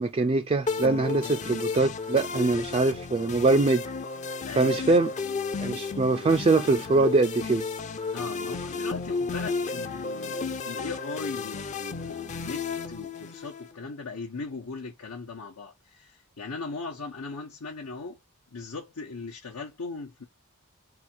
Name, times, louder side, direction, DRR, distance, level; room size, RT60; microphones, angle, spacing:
voice 1, 0.0-3.8 4.6-5.1 5.6-7.6, right 3 dB, 25° right, 0.3 m, -23 dB
sound 1, 0.7-13.7, left 4 dB, 30° left, 0.5 m, -33 dB
voice 2, 2.4-2.8 4.4-5.1 8.1-18.2 18.5-20.2, left 4 dB, 85° left, 1.0 m, -39 dB
4.1 x 2.4 x 4.5 m
head